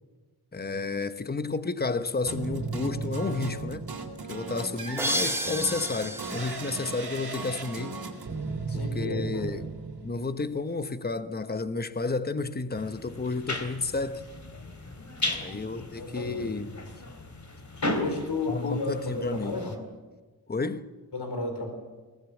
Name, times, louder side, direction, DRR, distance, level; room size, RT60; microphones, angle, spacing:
voice 1, 0.5-3.8 4.3-8.0 8.7-9.7 10.0-14.2 15.2-16.7 18.5-19.6 20.5-20.9, left 3 dB, 25° left, 1.0 m, -31 dB
sound 1, 2.3-10.5, right 3 dB, 65° right, 3.6 m, -35 dB
sound 2, 5.0-7.7, equal, 5° right, 1.1 m, -33 dB
voice 2, 8.7-9.6 15.4-16.7 17.9-19.8 21.1-21.7, left 3 dB, 80° left, 4.2 m, -33 dB
sound 3, 12.8-19.8, left 1 dB, 45° left, 3.2 m, -36 dB
22.5 x 18.5 x 8.4 m
wide cardioid pair, 115°, 40 cm